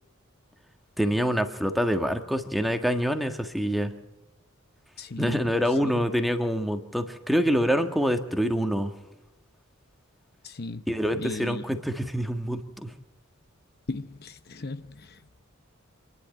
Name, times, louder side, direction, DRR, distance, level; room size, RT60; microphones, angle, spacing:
voice 1, 1.0-3.9 5.2-8.9 10.9-12.9, equal, ahead, 1.6 m, -26 dB
voice 2, 5.0-5.9 10.4-10.8 11.1-11.8 13.9-15.3, left 2 dB, 50° left, 0.9 m, -37 dB
27.0 x 11.0 x 9.0 m
head